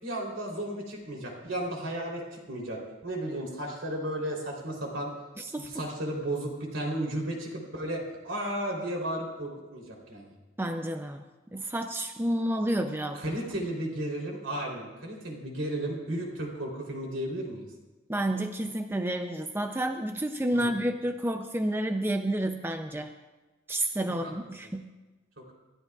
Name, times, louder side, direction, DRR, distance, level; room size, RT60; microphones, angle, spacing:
voice 1, 0.0-5.1 5.6-10.3 13.1-17.7 20.5-20.7 24.2-24.3 25.4-25.5, right 1 dB, 70° right, 0 dB, 3.4 m, -34 dB
voice 2, 5.4-5.7 10.6-11.2 11.5-13.4 18.1-23.1 23.7-24.9, right 1 dB, 10° right, 6 dB, 0.5 m, -30 dB
27.0 x 13.0 x 2.4 m, 1.2 s
head